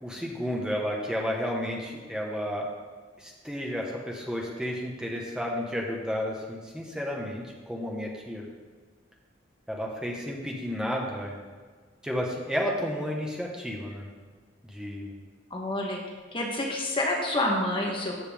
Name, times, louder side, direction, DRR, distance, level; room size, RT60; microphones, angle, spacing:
voice 1, 0.0-2.7 3.2-8.4 9.7-11.4 12.0-14.1 14.6-15.1, equal, 5° right, -2 dB, 1.3 m, -32 dB
voice 2, 15.5-16.0 16.3-18.3, left 1 dB, 25° left, 0 dB, 1.2 m, -28 dB
14.0 x 7.0 x 3.6 m, 1.5 s
head